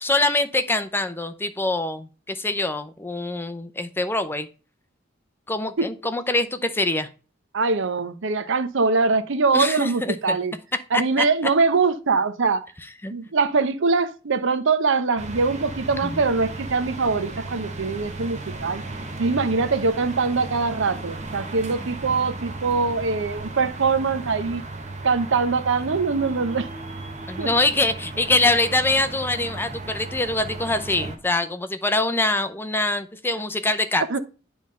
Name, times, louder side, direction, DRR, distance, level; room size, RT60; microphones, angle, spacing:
voice 1, 0.0-4.5 5.5-7.1 9.5-10.4 13.0-13.1 16.0-16.2 27.3-34.0, left 2 dB, 10° left, 0.6 m, -24 dB
voice 2, 7.5-10.5 10.9-12.6 13.1-18.8 19.2-24.6 25.0-26.7 27.4-27.5 34.1-34.2, right 4 dB, 65° right, 0.7 m, -23 dB
sound 1, 15.2-31.2, right 2 dB, 35° right, 1.2 m, -35 dB
9.5 x 3.5 x 5.2 m
head